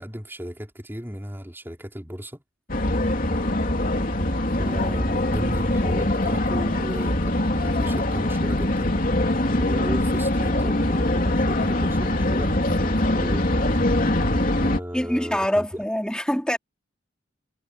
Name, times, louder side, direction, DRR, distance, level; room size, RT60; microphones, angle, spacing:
voice 1, 0.0-2.4 4.6-9.0 9.5-13.5 14.2-14.3 14.6-15.8, equal, 10° right, 4.1 m, -35 dB
sound 1, 2.7-14.8, left 1 dB, 50° left, 3.1 m, -23 dB
voice 2, 14.9-16.6, equal, 5° left, 4.4 m, -24 dB
head